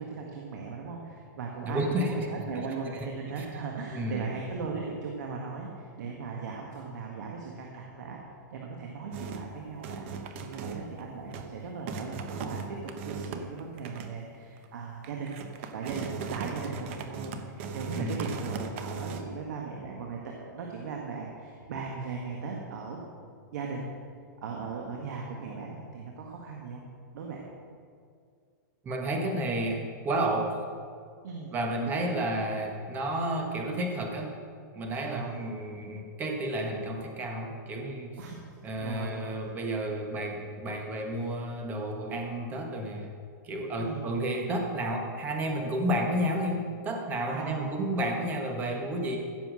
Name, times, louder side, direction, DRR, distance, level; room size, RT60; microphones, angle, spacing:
voice 1, 0.0-8.2 8.5-15.4 15.7-23.0 23.5-23.9 24.4-26.8 27.1-27.4 31.2-31.5 35.0-35.4 38.2-38.4 38.8-39.3 43.8-44.2 47.3-47.8, right 5 dB, 60° right, 0 dB, 1.8 m, -38 dB
voice 2, 1.6-2.3 3.4-3.5 3.9-4.3 17.9-18.2 28.8-30.5 31.5-34.3 34.7-38.2 38.6-43.1 43.4-49.2, right 1 dB, 15° right, 3 dB, 1.4 m, -31 dB
sound 1, 9.1-9.5 9.8-11.0 11.3-11.5 11.9-14.2 14.6-14.7 15.0-19.2, right 5 dB, 40° right, 0.9 m, -38 dB
15.5 x 7.0 x 6.4 m, 2.2 s
supercardioid pair, 165°, 10 cm